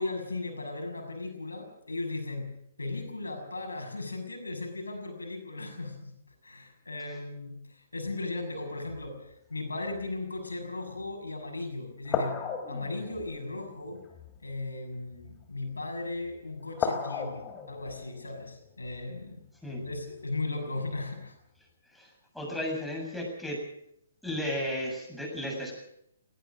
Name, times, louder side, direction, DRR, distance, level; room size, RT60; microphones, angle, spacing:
voice 1, 0.0-2.5 2.8-12.4 12.7-14.0 14.4-21.4, left 2 dB, 80° left, 3 dB, 6.5 m, -37 dB
sound 1, 8.0-9.3 9.9-10.1 11.0-11.1 12.0-15.7 16.2-16.4 16.7-20.2 20.9-21.1, left 6 dB, 20° left, 2.6 m, -37 dB
voice 2, 21.9-23.6 24.2-25.7, left 1 dB, ahead, -1 dB, 7.4 m, -34 dB
19.0 x 18.0 x 7.7 m, 0.77 s
figure-of-eight pair, 130°, 0 cm